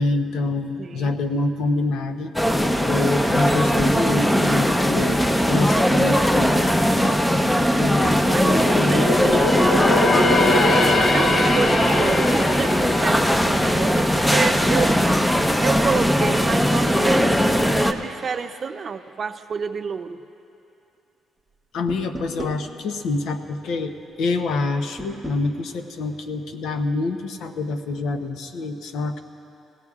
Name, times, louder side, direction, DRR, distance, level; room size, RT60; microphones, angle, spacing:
voice 1, 0.0-2.3 2.8-5.2 5.5-6.6 7.7-9.6 21.7-29.2, left 3 dB, 80° left, 8 dB, 0.8 m, -26 dB
voice 2, 0.8-1.1 8.3-10.2 11.0-15.1 15.6-20.2, right 6 dB, 45° right, 9 dB, 0.5 m, -29 dB
sound 1, 2.4-17.9, equal, 5° left, 0.6 m, -19 dB
sound 2, 7.6-15.0 15.4-15.6 16.2-16.9 17.2-17.3, left 2 dB, 50° left, 1.0 m, -23 dB
sound 3, 21.9-22.6 25.0-25.5, right 1 dB, 20° right, 0.9 m, -34 dB
21.0 x 16.5 x 2.4 m, 2.8 s
cardioid pair, 90°, 0 cm